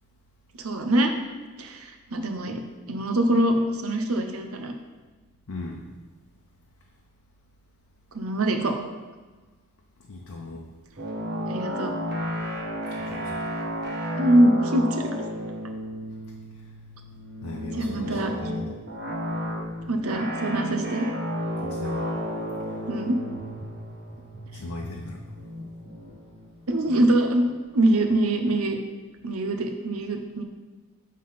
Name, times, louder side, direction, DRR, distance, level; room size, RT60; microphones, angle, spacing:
voice 1, 0.6-1.1 1.6-2.6 2.9-4.7 8.1-8.7 11.5-11.9 14.2-15.2 17.7-18.3 19.9-21.1 22.9-23.2 24.5-24.6 26.7-28.8 29.2-30.4, right 1 dB, 80° right, 5 dB, 0.8 m, -23 dB
voice 2, 5.5-5.9 10.1-10.6 12.9-13.4 17.4-18.8 21.6-22.1 24.5-25.2, left 2 dB, 80° left, -1 dB, 0.7 m, -38 dB
sound 1, 11.0-27.5, equal, 50° right, 1.2 m, -33 dB
7.5 x 3.7 x 5.7 m, 1.3 s
head